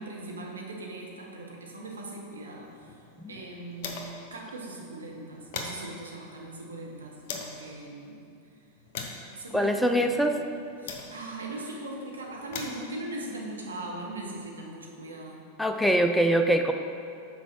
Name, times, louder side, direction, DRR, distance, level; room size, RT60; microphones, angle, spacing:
voice 1, 0.0-3.0 3.3-4.0 4.3-8.2 9.3-10.2 10.8-15.4, right 2 dB, 70° right, -1 dB, 1.1 m, -40 dB
sound 1, 2.5-4.3 4.7-4.8 5.1-7.6 8.3-11.5 12.2-14.4, left 4 dB, 50° left, 0.8 m, -42 dB
voice 2, 9.5-10.5 15.6-16.7, right 1 dB, ahead, 5 dB, 0.4 m, -23 dB
6.0 x 4.6 x 5.8 m, 2.5 s
figure-of-eight pair, 90°, 0 cm